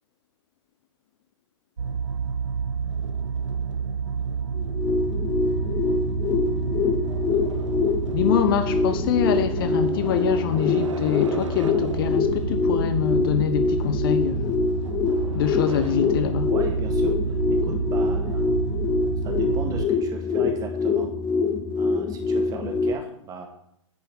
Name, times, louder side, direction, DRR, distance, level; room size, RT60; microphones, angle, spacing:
sound 1, 1.8-19.9, right 6 dB, 75° right, 0.9 m, -29 dB
sound 2, 4.6-22.9, left 5 dB, 20° left, 0.9 m, -25 dB
voice 1, 8.1-14.7 15.3-16.5, left 9 dB, 45° left, 1.0 m, -25 dB
voice 2, 16.5-18.5 19.2-21.1 21.8-23.5, right 4 dB, 20° right, 2.1 m, -36 dB
9.9 x 9.6 x 4.2 m
figure-of-eight pair, 110°, 16 cm